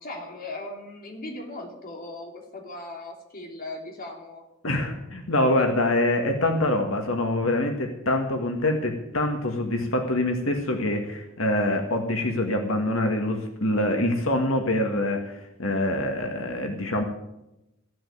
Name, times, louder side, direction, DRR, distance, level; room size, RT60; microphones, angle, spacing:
voice 1, 0.0-4.4, left 2 dB, 45° left, 1 dB, 2.9 m, -38 dB
voice 2, 4.6-17.0, left 1 dB, 90° left, 3 dB, 1.9 m, -25 dB
15.0 x 7.6 x 8.9 m, 0.90 s
head